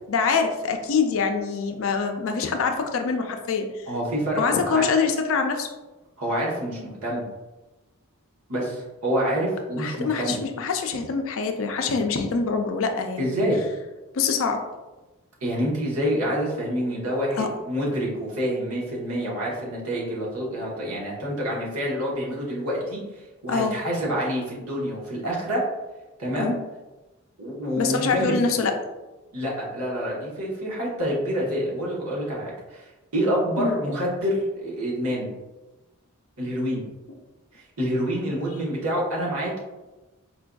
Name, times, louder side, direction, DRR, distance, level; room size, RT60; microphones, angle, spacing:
voice 1, 0.1-3.9 4.4-5.7 9.8-13.4 14.1-14.6 17.3-17.5 23.5-23.8 26.4-26.5 27.8-28.7 33.6-33.8, left 5 dB, 60° left, 5 dB, 0.4 m, -25 dB
voice 2, 3.9-4.9 6.2-7.2 8.5-10.4 13.2-13.6 15.4-23.0 23.4-25.6 26.2-26.5 27.4-28.6 29.3-35.3 36.4-36.8 37.5-39.6, equal, 90° right, -4 dB, 1.1 m, -27 dB
4.4 x 2.5 x 2.2 m, 1.1 s
head